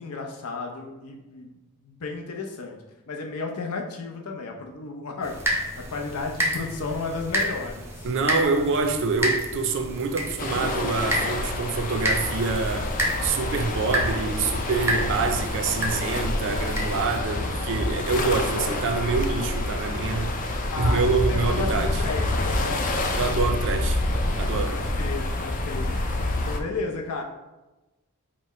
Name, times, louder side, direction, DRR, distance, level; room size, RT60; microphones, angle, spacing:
voice 1, 0.0-8.1 20.7-22.9 24.7-26.0 26.4-27.2, left 3 dB, 80° left, 0.6 m, -33 dB
sound 1, 5.2-17.2, equal, 10° right, 0.6 m, -30 dB
voice 2, 8.0-22.0 23.2-24.0 24.4-24.8, right 4 dB, 60° right, 0.5 m, -26 dB
sound 2, 10.4-26.6, left 2 dB, 35° left, 0.4 m, -27 dB
4.0 x 2.1 x 4.1 m
head